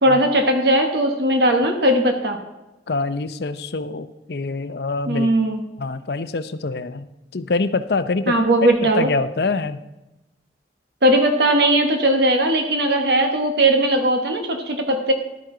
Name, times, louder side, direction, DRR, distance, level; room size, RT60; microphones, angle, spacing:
voice 1, 0.0-2.4 5.1-5.6 8.3-9.1 11.0-15.1, right 1 dB, 65° right, 4 dB, 1.2 m, -18 dB
voice 2, 2.9-5.3 5.8-7.1 7.3-9.8, left 3 dB, 65° left, 12 dB, 0.6 m, -25 dB
12.0 x 9.3 x 3.8 m, 0.99 s
head